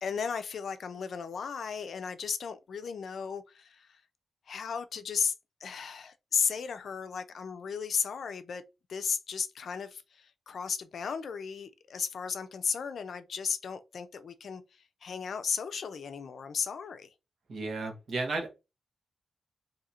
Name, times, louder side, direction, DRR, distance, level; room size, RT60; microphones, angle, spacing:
voice 1, 0.0-4.0 4.5-5.3 5.6-8.6 8.9-17.1, left 6 dB, 60° left, 0.4 m, -35 dB
voice 2, 17.5-18.5, right 3 dB, 60° right, 1.1 m, -33 dB
2.8 x 2.5 x 4.2 m
wide cardioid pair, 165°, 0 cm